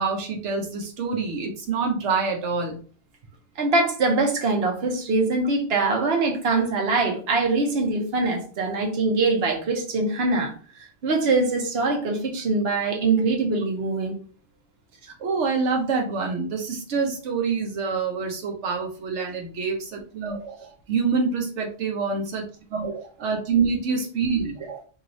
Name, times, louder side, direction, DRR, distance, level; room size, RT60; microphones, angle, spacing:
voice 1, 0.0-2.8 15.0-24.8, right 5 dB, 85° right, 2 dB, 1.0 m, -26 dB
voice 2, 3.6-10.5 11.0-14.2, right 3 dB, 65° right, 2 dB, 1.1 m, -23 dB
3.1 x 2.8 x 3.9 m, 0.39 s
omnidirectional pair, 1.2 m